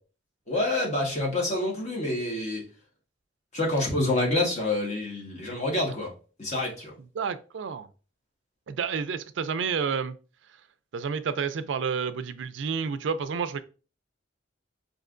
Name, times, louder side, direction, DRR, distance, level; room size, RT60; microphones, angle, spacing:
voice 1, 0.5-2.7 3.5-6.1 6.4-6.9, left 2 dB, 40° left, 1.4 m, -27 dB
voice 2, 7.1-7.9 8.7-10.2 10.9-13.6, right 6 dB, 90° right, 0.4 m, -30 dB
5.4 x 2.7 x 2.5 m
head